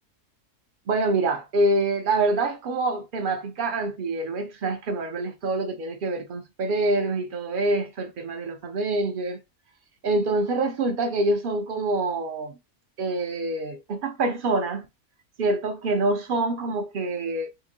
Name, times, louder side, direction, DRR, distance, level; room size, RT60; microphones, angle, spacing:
voice 1, 0.9-9.4 10.0-12.5 13.0-14.8 15.4-17.5, right 2 dB, 65° right, 0.5 m, -26 dB
2.9 x 2.6 x 3.8 m
omnidirectional pair, 1.5 m